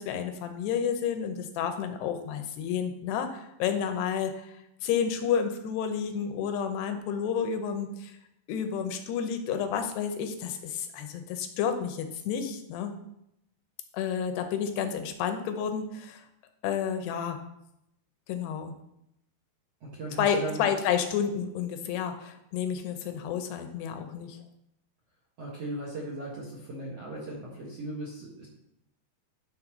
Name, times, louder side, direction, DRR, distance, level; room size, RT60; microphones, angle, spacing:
voice 1, 0.0-8.2 8.5-12.9 13.9-16.2 16.6-17.4 18.3-18.7 20.2-24.4, left 7 dB, 75° left, 7 dB, 2.6 m, -30 dB
voice 2, 19.8-20.7 25.4-28.5, right 1 dB, 65° right, -4 dB, 1.6 m, -37 dB
11.0 x 4.2 x 6.0 m, 0.81 s
omnidirectional pair, 5.2 m